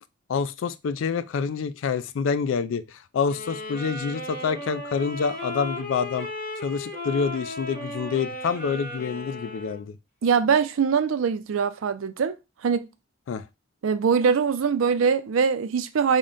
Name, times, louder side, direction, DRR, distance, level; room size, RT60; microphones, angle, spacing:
voice 1, 0.3-6.3 6.6-9.9 13.3-13.4, left 5 dB, 70° left, 0.3 m, -27 dB
sound 1, 3.3-9.9, left 1 dB, 45° left, 1.2 m, -35 dB
voice 2, 10.2-12.3 12.6-12.9 13.8-16.2, right 6 dB, 85° right, 0.4 m, -22 dB
3.7 x 2.1 x 3.7 m
head